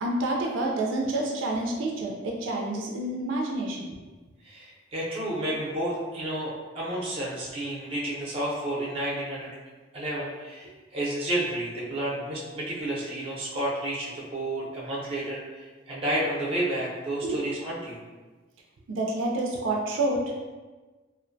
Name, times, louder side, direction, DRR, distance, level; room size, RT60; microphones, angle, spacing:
voice 1, 0.0-3.9 17.2-17.4 18.9-20.4, right 2 dB, 80° right, -1 dB, 0.4 m, -28 dB
voice 2, 4.4-9.5 9.9-18.0, right 1 dB, 30° right, -6 dB, 0.6 m, -31 dB
2.4 x 2.2 x 2.5 m, 1.3 s
head